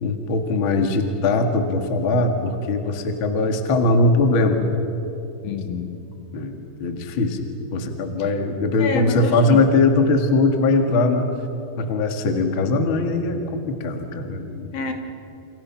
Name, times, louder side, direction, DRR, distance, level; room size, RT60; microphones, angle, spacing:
voice 1, 0.0-4.6 6.3-11.3 11.8-14.7, left 3 dB, 40° left, 5 dB, 1.9 m, -21 dB
voice 2, 5.4-6.0 8.8-9.6 14.7-14.9, left 5 dB, 65° left, 5 dB, 2.8 m, -27 dB
29.0 x 28.5 x 5.9 m, 3.0 s
omnidirectional pair, 4.8 m